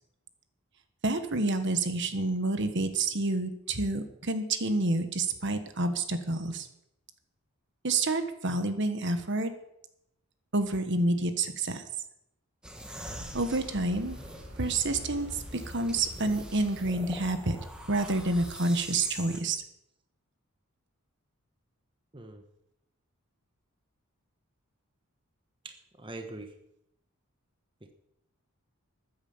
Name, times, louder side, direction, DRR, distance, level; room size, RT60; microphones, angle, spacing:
voice 1, 1.0-6.7 7.8-9.5 10.5-11.8 13.3-14.2 14.6-17.6 17.9-19.6, right 2 dB, 55° right, 9 dB, 1.4 m, -28 dB
sound 1, 12.6-19.4, right 1 dB, 5° right, 1.5 m, -45 dB
sound 2, 13.0-18.6, left 1 dB, 75° right, 3.5 m, -46 dB
voice 2, 22.1-22.4 25.6-26.5 27.8-27.9, right 2 dB, 25° right, 6 dB, 1.1 m, -43 dB
14.0 x 9.6 x 7.3 m, 0.80 s
head